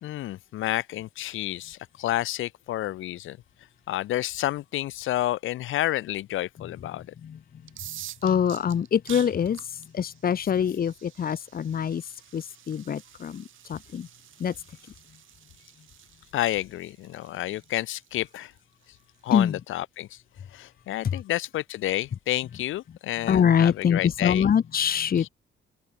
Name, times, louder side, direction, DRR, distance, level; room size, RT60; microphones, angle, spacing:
voice 1, 0.0-3.4 3.9-7.1 16.3-18.5 19.2-20.2 20.5-24.5 25.2-25.3, left 14 dB, 85° left, 2.2 m, -30 dB
sound 1, 7.6-19.4, right 13 dB, 80° right, 7.3 m, -48 dB
voice 2, 8.2-14.1 14.4-14.5 19.3-19.5 21.1-21.2 23.2-25.3, left 8 dB, 50° left, 1.4 m, -24 dB
cardioid pair, 90°, 20 cm